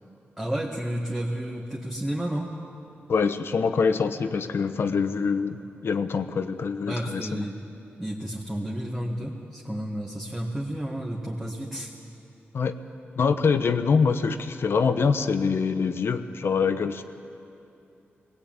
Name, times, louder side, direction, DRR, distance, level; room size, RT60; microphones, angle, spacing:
voice 1, 0.4-2.5 6.9-7.5 8.0-11.9, right 1 dB, 10° right, -3 dB, 2.0 m, -31 dB
voice 2, 3.1-7.5 12.5-12.7 13.2-17.0, left 5 dB, 65° left, 9 dB, 1.1 m, -24 dB
23.0 x 17.5 x 9.0 m, 2.6 s
wide cardioid pair, 115°, 4 cm